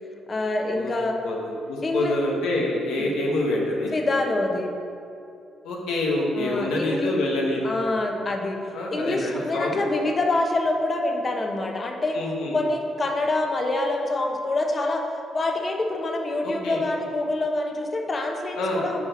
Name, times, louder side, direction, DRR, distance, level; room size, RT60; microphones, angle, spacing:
voice 1, 0.3-1.2 1.8-2.2 2.9-3.1 3.9-4.7 6.3-7.1 7.6-8.6 8.9-12.2 12.5-15.0 15.3-19.1, left 2 dB, 35° left, 2 dB, 1.0 m, -26 dB
voice 2, 1.2-3.9 5.6-7.8 8.7-9.8 12.1-12.6 16.4-16.8 18.6-18.8, left 1 dB, 90° left, -2 dB, 1.3 m, -26 dB
8.3 x 4.9 x 5.2 m, 2.6 s
cardioid pair, 90°, 0 cm